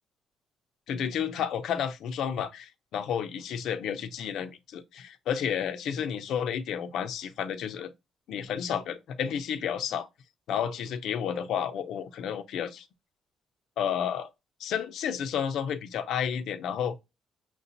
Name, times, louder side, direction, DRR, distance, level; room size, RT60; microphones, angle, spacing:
voice 1, 0.9-7.9 8.3-10.1 10.5-12.8 13.8-14.3 14.6-17.0, left 8 dB, 70° left, 0.6 m, -31 dB
6.7 x 2.3 x 2.6 m
cardioid pair, 145°, 0 cm